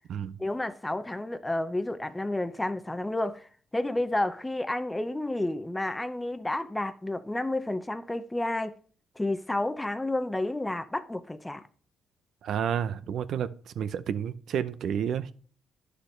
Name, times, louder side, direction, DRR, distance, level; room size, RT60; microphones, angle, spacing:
voice 1, 0.4-3.5 3.7-8.7 9.2-11.6, left 1 dB, 10° left, 0.7 m, -30 dB
voice 2, 12.4-15.3, right 8 dB, 70° right, 0.7 m, -30 dB
10.0 x 6.6 x 3.2 m
cardioid pair, 90°, 0 cm